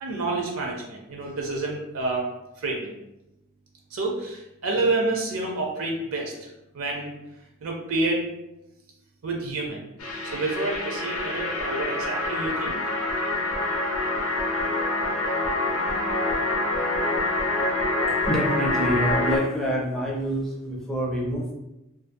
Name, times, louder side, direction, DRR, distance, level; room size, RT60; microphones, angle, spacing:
voice 1, 0.0-2.3 2.6-3.0 3.9-7.1 7.6-8.3 9.2-9.8 10.2-12.8, right 2 dB, 65° right, 0 dB, 0.5 m, -28 dB
sound 1, 10.0-19.4, left 2 dB, 75° left, 0.6 m, -26 dB
voice 2, 18.2-21.5, equal, ahead, -4 dB, 0.4 m, -26 dB
2.5 x 2.4 x 2.5 m, 0.92 s
head